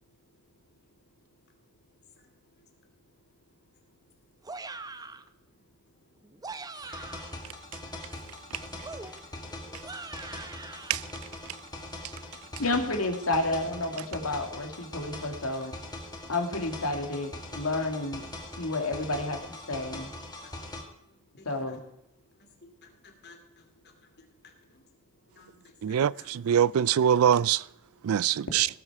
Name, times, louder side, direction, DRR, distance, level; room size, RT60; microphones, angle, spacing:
sound 1, 4.4-5.3 6.2-7.4 8.8-11.0, right 3 dB, 15° right, 0.6 m, -42 dB
sound 2, 6.7-20.8, left 1 dB, 20° left, 1.9 m, -42 dB
voice 1, 6.9-7.9 9.0-9.4 21.4-21.8 22.6-24.1 24.4-24.8 25.3-26.3 27.1-27.2 28.3-28.4, left 3 dB, 50° left, 2.7 m, -56 dB
voice 2, 12.6-15.7 16.3-18.2 18.6-19.4 19.7-20.1 21.5-21.8, left 2 dB, 75° left, 2.1 m, -30 dB
voice 3, 25.8-27.6 28.0-28.7, right 9 dB, 75° right, 0.4 m, -23 dB
18.0 x 8.0 x 4.7 m
head